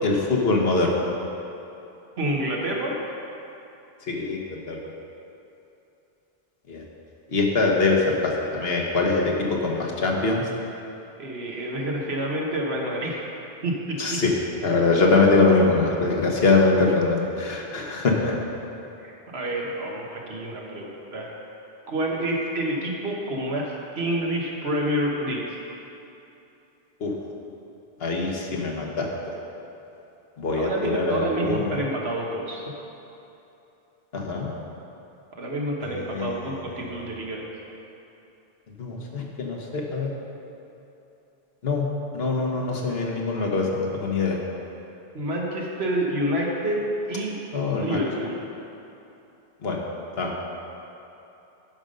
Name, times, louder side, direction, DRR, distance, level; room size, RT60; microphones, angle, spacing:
voice 1, 0.0-1.0 4.1-4.8 6.7-6.8 7.3-10.4 14.0-14.3 14.6-18.3 27.0-27.1 28.0-29.1 30.4-31.8 34.1-34.5 35.9-36.9 38.8-40.1 41.6-41.9 42.1-44.4 47.5-48.0 49.6-49.8 50.2-50.3, left 3 dB, 75° left, -1 dB, 1.4 m, -23 dB
voice 2, 2.2-3.0 11.2-13.2 13.6-14.2 19.0-21.3 21.9-25.6 30.5-32.7 35.3-37.4 45.1-47.3 47.8-48.4, right 1 dB, 85° right, -1 dB, 1.5 m, -28 dB
11.0 x 5.2 x 5.3 m, 2.9 s
omnidirectional pair, 1.0 m